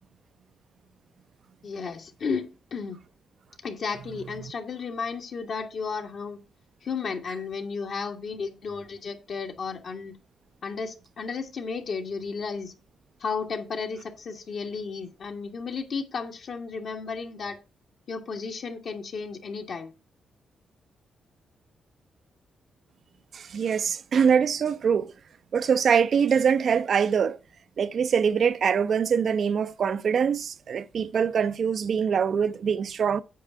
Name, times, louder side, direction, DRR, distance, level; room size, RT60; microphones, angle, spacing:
voice 1, 1.6-3.0 3.6-6.4 6.8-10.1 10.6-12.7 13.2-17.6 18.1-19.9, left 5 dB, 65° left, 1.6 m, -33 dB
voice 2, 23.3-25.1 25.5-27.4 27.8-33.2, right 7 dB, 60° right, 0.5 m, -23 dB
8.4 x 4.8 x 5.5 m
cardioid pair, 85°, 0 cm